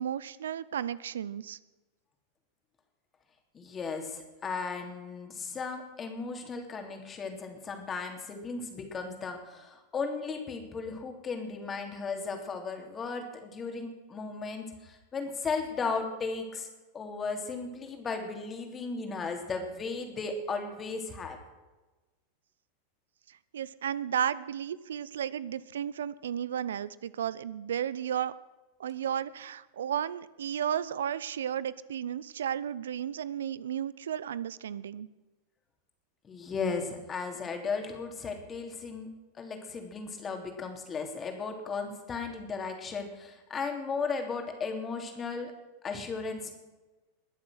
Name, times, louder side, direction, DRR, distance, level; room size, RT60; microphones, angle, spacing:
voice 1, 0.0-1.6 23.5-28.4 28.8-35.1, right 9 dB, 80° right, 18 dB, 0.5 m, -33 dB
voice 2, 3.5-16.7 16.9-21.4 36.2-39.1 39.3-45.5 45.8-46.5, left 4 dB, 25° left, 4 dB, 3.0 m, -36 dB
21.5 x 7.3 x 6.5 m, 1.1 s
hypercardioid pair, 95°, 0 cm